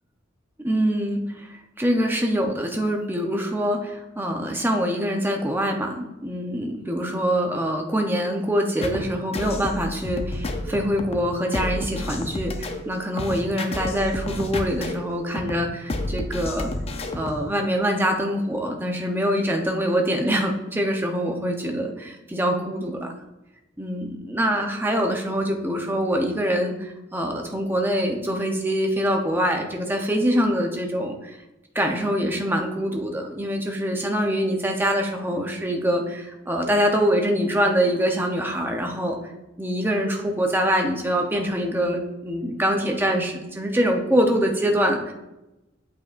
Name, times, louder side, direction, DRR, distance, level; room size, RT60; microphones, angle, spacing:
voice 1, 0.6-1.5 1.8-16.7 17.1-23.1 23.8-31.4 31.7-39.2 39.6-45.1, equal, 10° right, 2 dB, 0.8 m, -24 dB
sound 1, 8.8-17.5, left 1 dB, 35° left, 0.6 m, -31 dB
8.4 x 7.7 x 2.6 m, 0.99 s
head